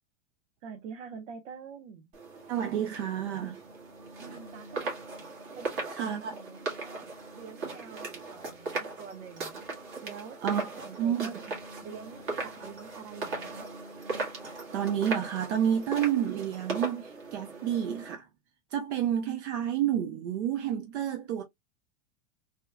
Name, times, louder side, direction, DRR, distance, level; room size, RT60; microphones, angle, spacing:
voice 1, 0.6-2.1 4.2-5.0 5.6-11.6 11.8-13.7, right 6 dB, 85° right, 0.9 m, -46 dB
sound 1, 2.1-18.1, right 3 dB, 45° right, 1.9 m, -38 dB
voice 2, 2.5-3.6 5.9-6.4 10.4-10.7 11.0-11.4 14.7-18.3 18.7-21.4, right 9 dB, 65° right, 0.8 m, -30 dB
3.5 x 3.0 x 2.2 m
supercardioid pair, 170°, 37 cm